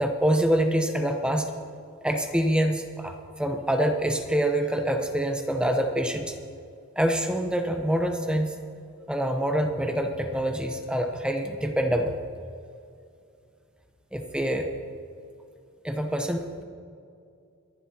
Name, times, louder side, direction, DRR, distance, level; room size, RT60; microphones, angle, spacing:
voice 1, 0.0-1.5 2.0-6.3 7.0-8.6 9.1-12.2 14.1-14.7 15.8-16.6, right 1 dB, 5° right, 4 dB, 0.9 m, -26 dB
23.5 x 11.0 x 2.9 m, 2.4 s
head